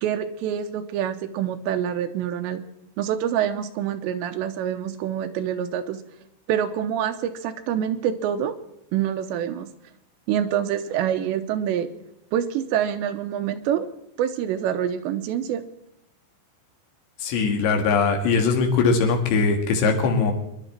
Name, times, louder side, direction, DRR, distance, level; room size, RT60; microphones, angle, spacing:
voice 1, 0.0-2.6 3.0-6.0 6.5-8.5 8.9-9.7 10.3-11.9 12.3-13.9 14.2-15.6, right 9 dB, 85° right, 8 dB, 3.1 m, -26 dB
voice 2, 17.2-20.3, left 4 dB, 80° left, 3 dB, 4.0 m, -21 dB
24.0 x 11.0 x 4.4 m, 0.80 s
omnidirectional pair, 5.0 m